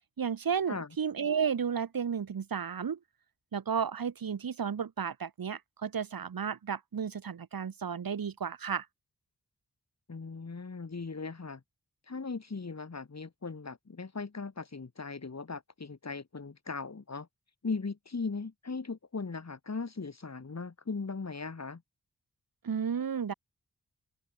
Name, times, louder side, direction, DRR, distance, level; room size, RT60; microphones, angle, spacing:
voice 1, 0.2-3.0 3.5-8.9 22.6-23.3, right 7 dB, 90° right, 2.1 m, -33 dB
voice 2, 10.1-11.6 12.1-17.3 17.6-21.8, left 4 dB, 50° left, 3.6 m, -38 dB
open air
wide cardioid pair, 70°, 34 cm